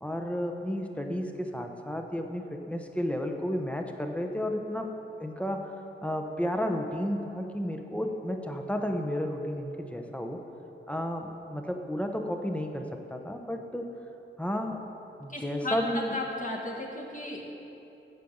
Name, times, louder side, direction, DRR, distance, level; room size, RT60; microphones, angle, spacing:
voice 1, 0.0-4.9 5.2-5.7 6.0-10.4 10.9-13.9 14.4-14.8 15.2-16.2, equal, 5° left, 3 dB, 0.9 m, -32 dB
voice 2, 15.3-17.4, left 2 dB, 40° left, -2 dB, 1.8 m, -35 dB
9.1 x 7.5 x 7.8 m, 2.9 s
wide cardioid pair, 100°, 21 cm